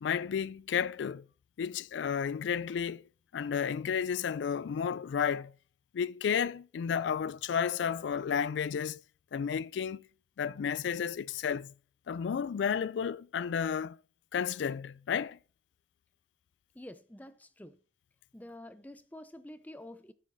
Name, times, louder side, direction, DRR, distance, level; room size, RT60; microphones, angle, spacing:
voice 1, 0.0-1.3 1.6-3.1 3.3-5.5 5.9-9.0 9.3-10.1 10.4-11.7 12.1-14.0 14.3-15.4, left 7 dB, 85° left, 0.3 m, -32 dB
voice 2, 16.7-17.8 18.3-20.1, left 1 dB, 10° left, 0.5 m, -48 dB
11.0 x 7.4 x 2.7 m
head